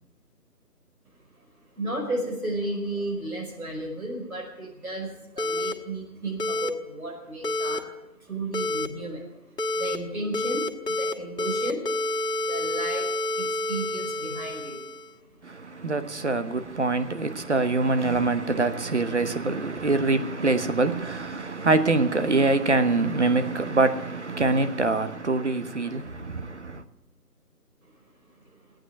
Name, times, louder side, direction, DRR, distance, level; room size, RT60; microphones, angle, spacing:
voice 1, 1.3-15.9 27.9-28.0 28.4-28.7, right 2 dB, 65° right, 5.0 m, -34 dB
sound 1, 5.4-5.7 6.4-6.7 7.4-7.8 8.5-8.9 9.6-10.0 10.3-11.1 11.4-15.1, left 2 dB, 90° left, 1.7 m, -28 dB
voice 2, 15.4-26.8, right 3 dB, 45° right, 1.0 m, -24 dB
14.0 x 9.0 x 9.2 m
figure-of-eight pair, 165°, 47 cm